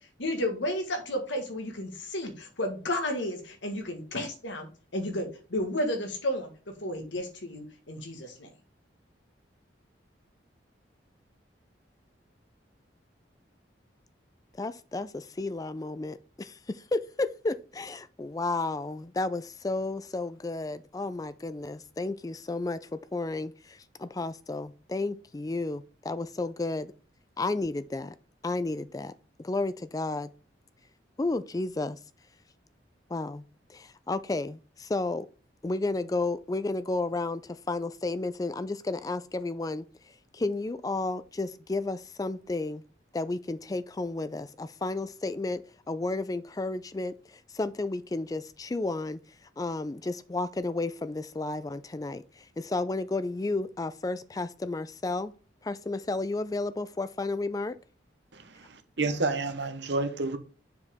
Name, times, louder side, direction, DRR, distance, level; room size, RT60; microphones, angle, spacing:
voice 1, 0.2-4.7 4.9-8.5, left 1 dB, 80° left, 1.5 m, -32 dB
voice 2, 14.6-26.9 27.4-28.2 28.4-29.1 29.4-30.3 31.2-32.0 33.1-33.4 33.7-35.3 35.6-39.8 40.3-42.8 43.1-45.6 45.9-49.2 49.6-55.3 55.6-57.8, left 2 dB, 20° left, 0.3 m, -32 dB
voice 3, 58.3-58.7 59.0-60.4, right 3 dB, 65° right, 0.9 m, -29 dB
6.6 x 5.0 x 3.5 m
head